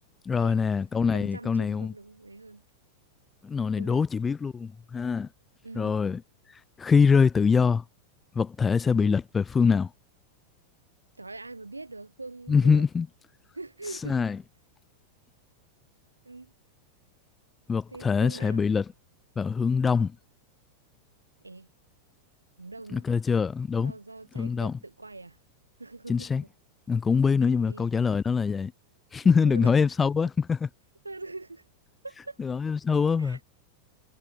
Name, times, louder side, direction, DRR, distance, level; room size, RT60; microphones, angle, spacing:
voice 1, 0.3-1.9 3.4-5.3 5.8-6.2 6.8-7.8 8.4-9.9 12.5-13.1 14.0-14.4 17.7-18.8 19.4-20.2 22.9-23.9 24.4-24.7 26.1-26.4 26.9-28.7 29.1-30.7 32.4-33.4, left 5 dB, 15° left, 0.3 m, -24 dB
voice 2, 1.1-2.6 3.8-4.1 5.6-6.0 8.9-9.2 11.2-12.8 13.5-14.3 16.2-16.5 17.9-18.7 21.4-21.7 22.6-23.1 23.8-25.4 25.8-26.3 27.4-27.9 29.2-29.7 31.0-31.6 32.0-32.4 33.2-33.4, right 3 dB, 80° right, 3.3 m, -43 dB
figure-of-eight pair, 90°, 0 cm